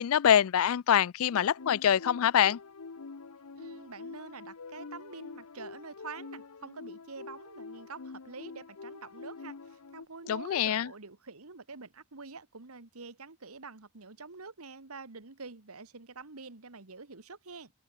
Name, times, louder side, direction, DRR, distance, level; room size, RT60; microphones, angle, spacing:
voice 1, 0.0-2.6 10.3-10.9, left 9 dB, 70° left, 0.4 m, -25 dB
sound 1, 1.3-10.1, left 4 dB, 90° left, 0.9 m, -46 dB
voice 2, 3.6-17.7, right 4 dB, 75° right, 1.8 m, -46 dB
head